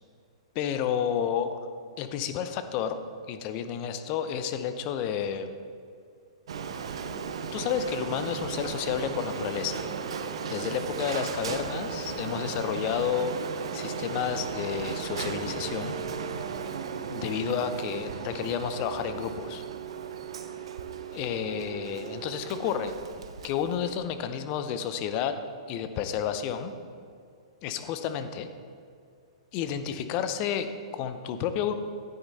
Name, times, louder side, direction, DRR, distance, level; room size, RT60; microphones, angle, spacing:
voice 1, 0.5-1.7 2.0-3.0 3.3-5.5 7.5-9.8 10.5-13.3 13.7-15.9 17.1-19.6 21.1-22.9 23.4-25.4 25.7-26.7 27.6-28.5 29.5-31.7, left 8 dB, 40° left, 10 dB, 0.7 m, -31 dB
Printer, 6.5-24.2, right 6 dB, 70° right, 0.6 m, -36 dB
9.6 x 6.5 x 4.1 m, 2.4 s
hypercardioid pair, 115°, 3 cm